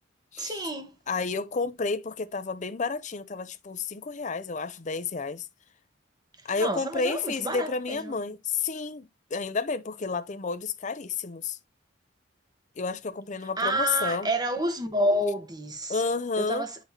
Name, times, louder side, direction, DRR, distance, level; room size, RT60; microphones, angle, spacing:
voice 1, 0.4-0.9 6.6-8.1 13.6-16.0 16.4-16.8, right 1 dB, 20° right, 1.2 m, -29 dB
voice 2, 1.1-5.5 6.4-11.6 12.8-14.3 15.9-16.7, left 4 dB, 40° left, 0.6 m, -31 dB
8.2 x 5.1 x 2.8 m
head